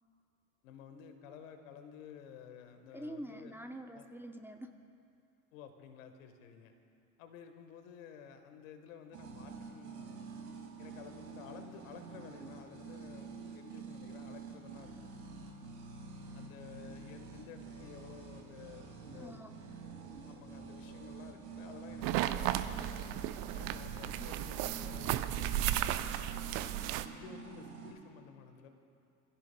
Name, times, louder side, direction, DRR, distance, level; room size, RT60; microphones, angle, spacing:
voice 1, 0.6-3.5 3.9-4.1 5.5-6.7 7.2-10.3 10.8-15.1 16.3-19.4 20.3-23.0 23.5-26.8 27.1-28.7, left 7 dB, 70° left, 7 dB, 1.5 m, -53 dB
voice 2, 2.9-4.8 19.2-19.5 24.2-24.3, right 1 dB, 5° right, 5 dB, 0.8 m, -46 dB
sound 1, 9.1-27.9, right 5 dB, 75° right, 2.3 m, -48 dB
sound 2, 22.0-27.0, right 13 dB, 60° right, 0.7 m, -34 dB
26.5 x 16.0 x 2.3 m, 2.6 s
figure-of-eight pair, 60°, 42 cm